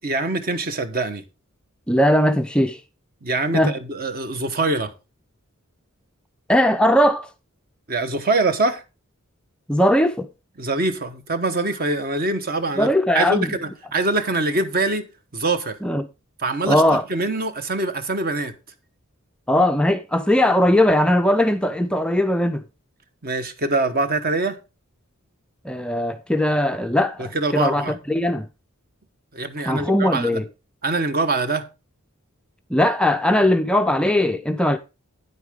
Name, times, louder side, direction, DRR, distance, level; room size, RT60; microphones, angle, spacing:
voice 1, 0.0-1.2 3.2-4.9 7.9-8.8 10.6-12.9 13.1-15.1 15.3-15.8 16.4-16.8 17.1-18.5 23.2-24.6 27.2-27.9 29.3-30.4 30.8-31.7, right 2 dB, 45° right, 1.1 m, -24 dB
voice 2, 1.9-2.8 3.5-3.7 6.5-7.3 9.7-10.3 12.8-13.5 15.8-16.0 16.7-17.0 19.5-22.6 25.6-28.5 29.7-30.5 32.7-34.8, left 1 dB, 5° left, 0.4 m, -19 dB
9.5 x 8.1 x 3.6 m
head